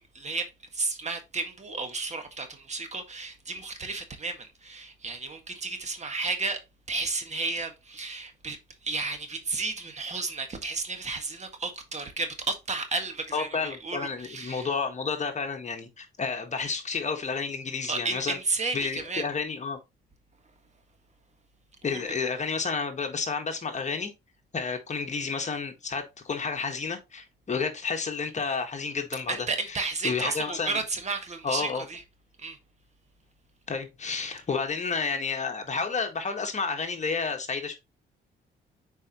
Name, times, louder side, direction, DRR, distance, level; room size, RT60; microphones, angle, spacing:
voice 1, 0.1-6.6 6.9-14.7 17.9-19.3 21.8-22.0 29.3-32.0 32.4-32.6, right 3 dB, 35° right, 1.6 m, -33 dB
voice 2, 13.3-18.4 18.7-19.8 21.8-24.1 24.5-29.4 29.7-30.8 31.4-31.8 33.7-37.8, left 5 dB, 35° left, 1.6 m, -31 dB
7.4 x 4.7 x 3.0 m
cardioid pair, 90°, 20 cm